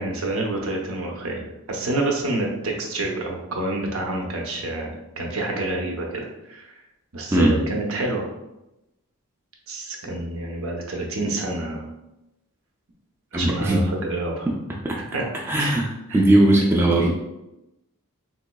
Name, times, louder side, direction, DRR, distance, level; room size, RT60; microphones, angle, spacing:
voice 1, 0.0-6.8 7.1-8.3 9.7-11.8 13.3-14.5 15.0-15.2 15.5-15.8 16.1-16.2, right 2 dB, 70° right, 0 dB, 0.7 m, -28 dB
voice 2, 13.3-13.8 14.8-15.0 15.5-15.9 16.1-17.1, right 1 dB, 10° right, -2 dB, 0.3 m, -18 dB
3.7 x 3.0 x 2.2 m, 0.92 s
head